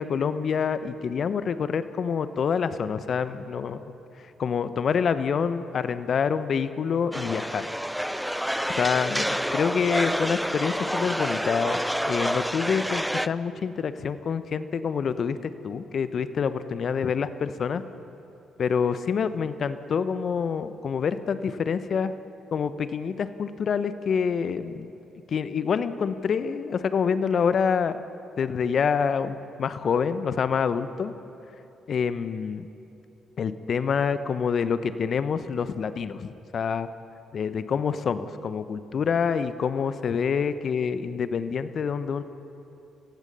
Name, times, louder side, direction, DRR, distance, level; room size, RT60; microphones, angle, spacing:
voice 1, 0.0-3.8 4.4-7.7 8.7-17.8 18.6-22.1 22.5-24.9 25.3-28.0 28.4-31.1 31.9-32.7 33.4-36.9 37.3-42.2, left 6 dB, 55° left, 12 dB, 1.0 m, -27 dB
sound 1, 7.1-13.3, equal, ahead, 0.6 m, -28 dB
29.5 x 16.0 x 5.6 m, 2.9 s
hypercardioid pair, 45°, 0 cm